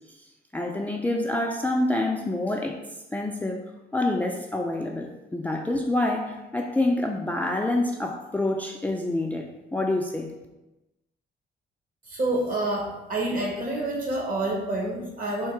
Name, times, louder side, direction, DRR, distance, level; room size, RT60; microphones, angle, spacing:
voice 1, 0.5-2.8 3.1-3.6 3.9-10.3, left 2 dB, 10° left, 1 dB, 0.4 m, -27 dB
voice 2, 12.1-15.5, right 2 dB, 45° right, -1 dB, 1.3 m, -28 dB
3.6 x 2.8 x 4.5 m, 1.0 s
cardioid pair, 90°, 20 cm